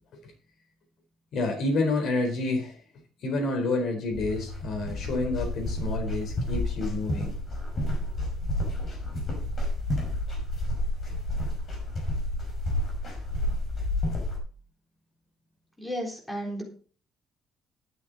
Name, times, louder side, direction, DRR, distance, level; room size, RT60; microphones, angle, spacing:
voice 1, 1.3-2.8 3.2-7.3, left 2 dB, 55° left, 2 dB, 4.3 m, -29 dB
sound 1, 4.1-14.4, left 1 dB, 35° left, 5.4 m, -30 dB
voice 2, 15.8-16.6, equal, 5° left, 0 dB, 3.7 m, -33 dB
12.5 x 9.9 x 4.1 m, 0.40 s
cardioid pair, 170°, 0 cm